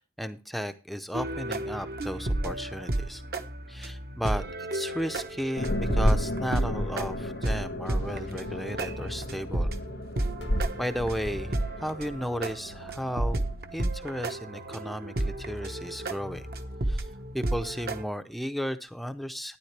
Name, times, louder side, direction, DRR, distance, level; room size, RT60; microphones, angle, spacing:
voice 1, 0.0-3.2 3.7-4.4 4.7-9.7 10.8-13.4 13.7-16.5 16.9-19.6, equal, ahead, 9 dB, 0.6 m, -34 dB
sound 1, 1.1-18.0, right 1 dB, 55° right, 1.1 m, -32 dB
sound 2, 5.6-13.6, left 1 dB, 85° left, 1.6 m, -32 dB
12.0 x 10.5 x 3.3 m, 0.30 s
head